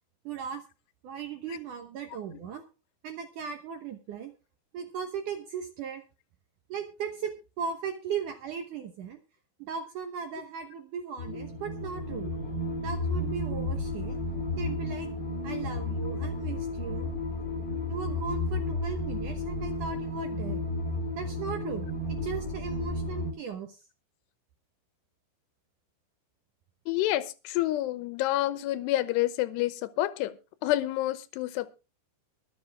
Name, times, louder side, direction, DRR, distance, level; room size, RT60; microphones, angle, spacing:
voice 1, 0.3-0.6 1.0-2.6 3.0-4.3 4.7-6.0 6.7-7.3 7.6-9.2 9.6-12.3 12.8-14.2 14.5-15.1 15.4-17.1 17.9-20.6 21.2-23.8, right 7 dB, 70° right, 2.1 m, -37 dB
sound 1, 11.2-23.3, left 2 dB, 35° left, 2.2 m, -32 dB
voice 2, 26.9-30.4 30.6-31.7, left 15 dB, 80° left, 2.9 m, -28 dB
23.0 x 7.7 x 3.6 m
omnidirectional pair, 5.0 m